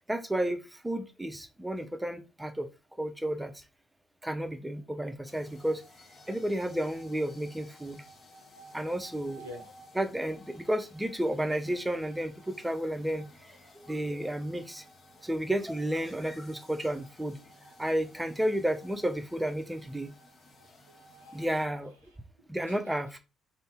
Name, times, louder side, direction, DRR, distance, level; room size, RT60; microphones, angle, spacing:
voice 1, 0.1-2.7 3.0-3.6 4.2-5.8 6.3-8.0 8.7-9.4 10.0-14.8 15.2-17.4 17.8-20.1 21.3-22.0 22.5-23.2, right 1 dB, 10° right, 0.5 m, -32 dB
sound 1, 5.2-21.6, left 1 dB, 50° left, 0.9 m, -55 dB
voice 2, 9.4-9.7 17.4-17.6 20.6-21.5 22.0-23.2, left 1 dB, 85° right, 0.6 m, -51 dB
2.6 x 2.0 x 3.5 m
hypercardioid pair, 45°, 0 cm